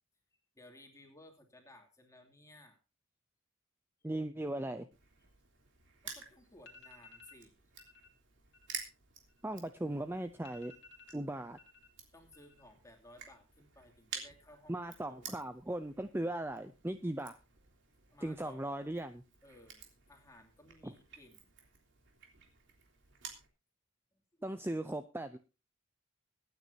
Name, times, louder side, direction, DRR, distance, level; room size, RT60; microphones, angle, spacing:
voice 1, 0.3-2.8 6.0-7.5 7.8-7.9 12.1-15.5 18.1-18.9 19.4-21.5 24.1-24.5, left 1 dB, 15° left, 2 dB, 2.9 m, -59 dB
voice 2, 4.0-4.9 9.4-10.7 11.1-11.6 14.7-17.4 18.2-19.2 20.8-20.9 24.4-25.4, right 1 dB, 10° right, 10 dB, 0.5 m, -38 dB
Crushing, 4.9-23.5, right 6 dB, 60° right, 3.3 m, -52 dB
sound 1, 6.1-6.2 6.6-7.4 7.8-8.1 8.4-9.9 10.1-10.2 10.4-11.9 12.2-12.8 13.1-13.6, left 4 dB, 60° left, 2.2 m, -57 dB
24.0 x 9.4 x 2.8 m, 0.31 s
head